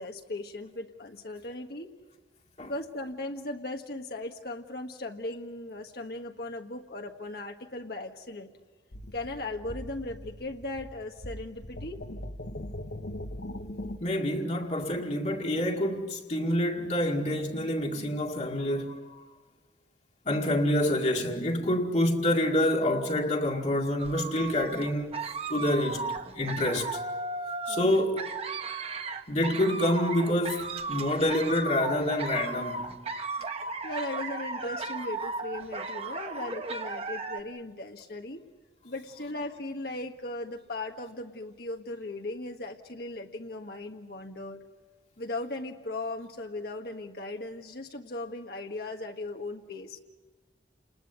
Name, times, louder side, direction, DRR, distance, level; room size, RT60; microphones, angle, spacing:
voice 1, 0.0-1.9 2.6-8.5 9.1-12.0 27.7-28.0 33.8-38.4 38.8-44.6 45.2-50.0, left 2 dB, 60° left, 1.6 m, -38 dB
sound 1, 8.9-14.0, left 1 dB, 90° left, 1.5 m, -40 dB
voice 2, 14.0-19.2 20.3-25.1 25.5-27.0 27.7-28.3 29.3-33.0, left 1 dB, 40° left, 2.2 m, -27 dB
sound 2, 24.0-37.4, right 3 dB, 35° right, 1.5 m, -35 dB
29.5 x 20.5 x 8.2 m
head